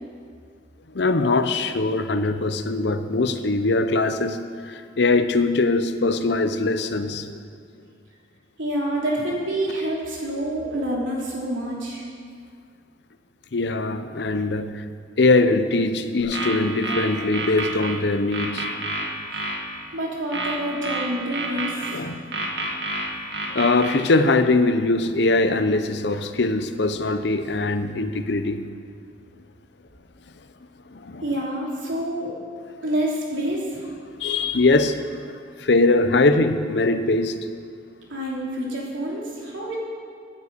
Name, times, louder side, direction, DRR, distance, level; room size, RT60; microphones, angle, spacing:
voice 1, 0.9-7.4 13.5-14.9 15.2-18.7 21.9-22.2 23.5-28.6 30.9-31.2 34.2-35.3 35.6-37.5, left 3 dB, 60° left, 10 dB, 0.7 m, -22 dB
voice 2, 8.6-12.0 19.3-19.4 19.9-22.0 31.2-32.3 32.8-33.8 38.1-39.8, right 1 dB, 85° right, -3 dB, 3.2 m, -27 dB
sound 1, 16.2-18.0 18.3-19.6 20.3-22.0 22.3-23.9, right 2 dB, 60° right, 2.0 m, -28 dB
9.8 x 9.4 x 8.3 m, 2.2 s
head